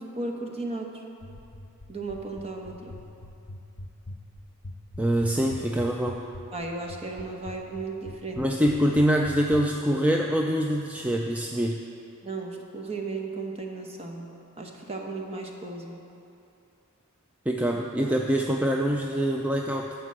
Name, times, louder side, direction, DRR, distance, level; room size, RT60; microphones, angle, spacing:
voice 1, 0.2-0.9 1.9-2.9 6.5-8.4 12.2-14.3 14.6-16.0, right 3 dB, 30° right, 1 dB, 1.1 m, -35 dB
sound 1, 1.2-9.6, left 1 dB, 60° left, 0.8 m, -40 dB
voice 2, 5.0-6.2 8.4-11.8 17.5-19.9, equal, 5° right, 1 dB, 0.4 m, -25 dB
13.0 x 4.5 x 7.6 m, 2.7 s
head